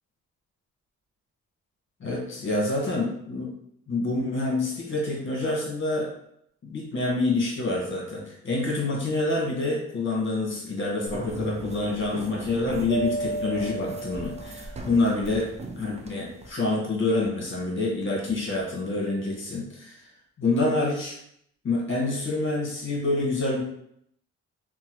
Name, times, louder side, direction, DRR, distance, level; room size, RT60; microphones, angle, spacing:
voice 1, 2.0-3.5 3.9-6.1 6.6-15.5 15.8-20.1 20.4-21.2 21.6-23.6, left 2 dB, 40° left, -2 dB, 1.3 m, -27 dB
sound 1, 11.1-16.5, right 2 dB, 20° right, 0.4 m, -39 dB
Mallet percussion, 12.9-15.0, right 3 dB, 55° right, 1.2 m, -32 dB
3.0 x 2.2 x 2.9 m, 0.70 s
cardioid pair, 90°, 30 cm